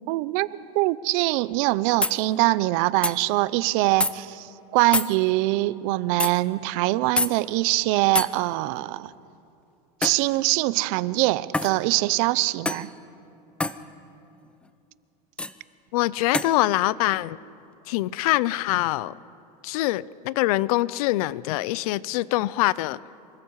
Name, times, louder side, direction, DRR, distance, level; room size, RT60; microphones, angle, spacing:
voice 1, 0.1-0.5 0.7-9.1 10.0-12.9, right 19 dB, 60° right, 18 dB, 0.6 m, -23 dB
sound 1, 1.5-1.6 2.0-2.2 3.0-3.2 4.0-4.1 4.9-5.1 6.2-6.3 7.2-7.3 8.1-8.3 10.0-10.3 11.5-11.8 12.6-12.9 13.6-13.8 15.4-15.5 16.3-16.5, left 2 dB, 5° left, 0.6 m, -25 dB
voice 2, 15.9-17.4 17.9-19.2 19.6-23.0, left 17 dB, 70° left, 20 dB, 0.6 m, -24 dB
27.0 x 24.5 x 4.8 m, 2.6 s
supercardioid pair, 130°, 20 cm